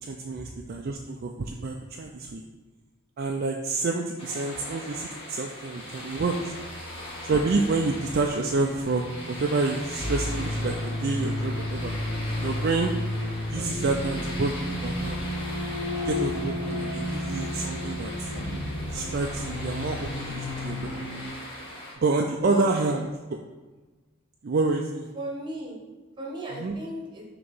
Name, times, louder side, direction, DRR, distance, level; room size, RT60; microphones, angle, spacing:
voice 1, 0.0-2.4 3.2-6.5 7.2-11.9 12.4-13.0 13.5-15.3 16.1-18.3 18.9-21.2 22.0-23.4 24.4-25.1 26.5-26.8, right 3 dB, 45° right, 2 dB, 0.4 m, -28 dB
sound 1, 4.2-21.9, left 1 dB, 25° left, 1.4 m, -40 dB
sound 2, 5.6-21.6, equal, 85° left, 1.3 m, -41 dB
sound 3, 10.0-21.3, left 1 dB, 65° left, 1.3 m, -32 dB
voice 2, 22.4-22.8 25.1-25.8 26.2-27.2, right 1 dB, 20° right, -1 dB, 1.2 m, -35 dB
6.4 x 3.0 x 5.3 m, 1.3 s
head